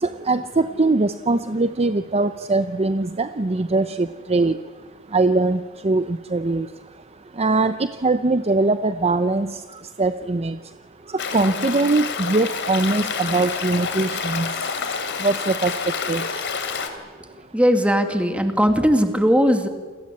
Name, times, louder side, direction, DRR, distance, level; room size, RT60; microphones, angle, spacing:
voice 1, 0.0-4.6 5.1-6.7 7.4-9.5 10.0-10.6 11.3-14.5 15.2-15.7 16.1-16.2, right 3 dB, 30° right, 10 dB, 0.7 m, -21 dB
Stream, 11.2-16.9, left 5 dB, 60° left, 3.1 m, -28 dB
voice 2, 17.5-19.7, equal, 5° right, 6 dB, 2.3 m, -18 dB
29.0 x 21.5 x 8.5 m, 1.4 s
head